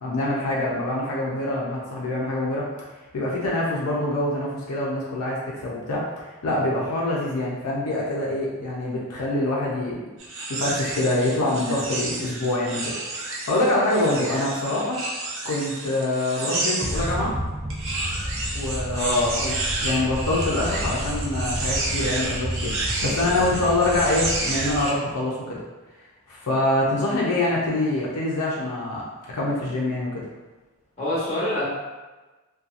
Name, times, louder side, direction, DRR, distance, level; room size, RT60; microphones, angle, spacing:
voice 1, 0.0-2.7 3.1-10.1 10.5-15.0 15.4-17.3 18.5-19.1 19.4-19.5 19.8-25.6 26.3-29.0 29.3-30.2, left 1 dB, 80° left, -4 dB, 0.5 m, -25 dB
sound 1, 10.2-17.2 17.7-25.0, right 2 dB, 60° right, 0.6 m, -30 dB
sound 2, 16.8-24.8, equal, 10° right, 0.4 m, -31 dB
voice 2, 18.9-19.3 23.3-23.4 31.0-31.6, left 2 dB, 30° left, -9 dB, 1.0 m, -24 dB
2.7 x 2.2 x 2.4 m, 1.2 s
head